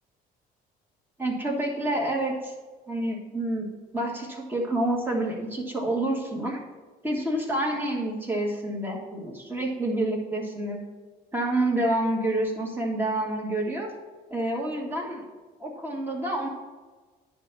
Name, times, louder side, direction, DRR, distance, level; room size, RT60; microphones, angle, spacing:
voice 1, 1.2-2.5 2.9-3.7 3.9-6.6 7.0-10.8 11.3-13.9 14.3-15.2 15.6-16.5, right 1 dB, 10° right, -1 dB, 1.9 m, -28 dB
10.0 x 3.5 x 6.8 m, 1.3 s
cardioid pair, 110°, 17 cm